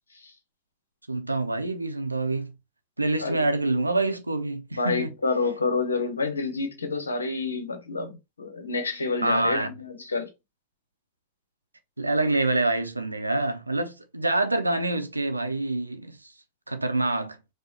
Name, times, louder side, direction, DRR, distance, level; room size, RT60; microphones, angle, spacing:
voice 1, 1.1-2.5 3.0-5.1 9.2-9.7 12.0-16.2 16.7-17.4, right 2 dB, 85° right, 0.6 m, -26 dB
voice 2, 4.7-10.3, left 4 dB, 75° left, 0.9 m, -28 dB
4.8 x 2.2 x 2.9 m
figure-of-eight pair, 90°, 0 cm